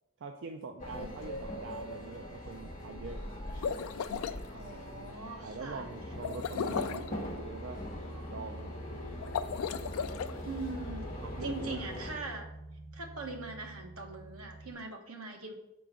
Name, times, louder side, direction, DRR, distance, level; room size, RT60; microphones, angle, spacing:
voice 1, 0.2-3.3 4.1-4.4 5.4-7.9 8.2-8.8 11.2-11.8, right 4 dB, 55° right, 4 dB, 0.4 m, -44 dB
sound 1, 0.8-12.2, left 1 dB, 40° left, 1.2 m, -42 dB
voice 2, 1.0-1.6 4.5-5.8 10.4-11.1 11.4-12.5 12.9-15.5, right 3 dB, 75° right, 3 dB, 1.0 m, -42 dB
sound 2, 3.5-4.4 6.2-7.1 9.2-10.3, left 7 dB, 70° left, 0.3 m, -35 dB
sound 3, 6.0-14.7, right 1 dB, 20° right, 1.7 m, -46 dB
5.0 x 3.8 x 5.7 m, 0.87 s
head